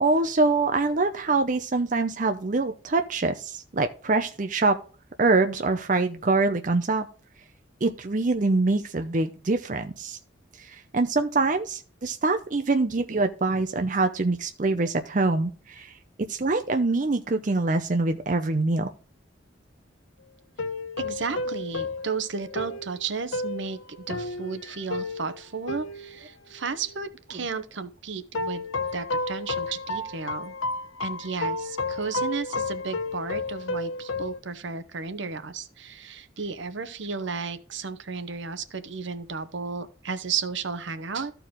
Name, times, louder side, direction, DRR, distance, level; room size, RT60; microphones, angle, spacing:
voice 1, 0.0-4.8 5.2-7.1 7.8-10.2 10.6-15.9 16.3-18.9 27.3-27.4, right 3 dB, 40° right, 0.6 m, -24 dB
sound 1, 20.6-27.2 28.3-34.4, left 2 dB, 85° left, 0.8 m, -32 dB
voice 2, 21.0-23.8 24.1-28.6 28.9-30.5 31.0-41.3, right 5 dB, 70° right, 0.8 m, -33 dB
13.5 x 4.6 x 3.7 m
head